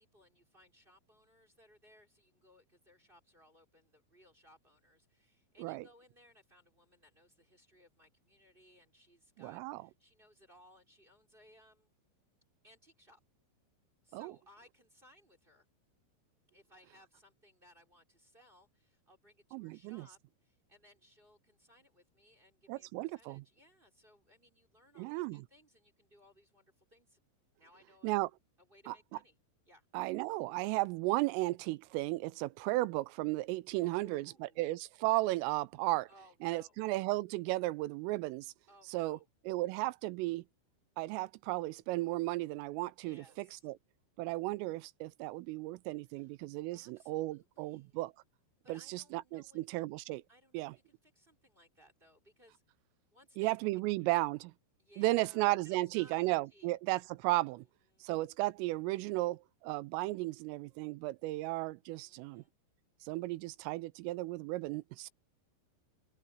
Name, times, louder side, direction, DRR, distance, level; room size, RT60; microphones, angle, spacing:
voice 1, 0.0-11.9 12.6-13.2 14.0-15.7 16.5-27.2 27.6-28.1 28.6-29.4 29.6-29.9 33.8-34.8 36.1-36.8 38.7-39.3 43.0-43.7 46.1-46.3 46.7-47.9 48.6-49.8 50.3-52.6 53.1-53.5 54.0-54.2 54.8-56.8 57.9-58.1 62.0-62.5, equal, 10° right, 4.3 m, -64 dB
voice 2, 9.4-9.8 14.1-14.3 19.5-20.1 22.7-23.4 25.0-25.5 28.0-28.3 28.9-29.0 29.9-36.1 36.4-38.5 38.9-39.2 39.5-40.4 41.0-43.7 44.2-48.1 48.7-50.2 50.5-50.8 53.4-54.5 55.0-57.7 58.0-62.4 63.0-65.1, right 20 dB, 85° right, 3.3 m, -35 dB
open air
omnidirectional pair, 5.8 m